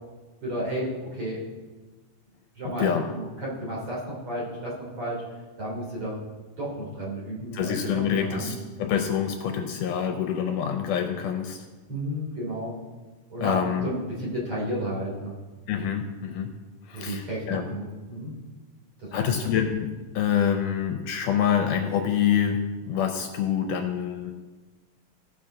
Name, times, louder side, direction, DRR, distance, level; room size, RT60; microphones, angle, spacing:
voice 1, 0.4-1.4 2.6-5.2 5.6-6.2 6.6-8.6 11.9-12.8 13.3-15.3 16.9-18.4 19.0-19.5, equal, 40° right, -5 dB, 3.8 m, -32 dB
voice 2, 2.7-3.0 7.5-11.6 13.4-13.9 15.7-16.6 16.9-17.7 19.1-24.3, left 8 dB, 80° left, 5 dB, 2.0 m, -26 dB
16.5 x 5.8 x 3.8 m, 1.3 s
omnidirectional pair, 4.0 m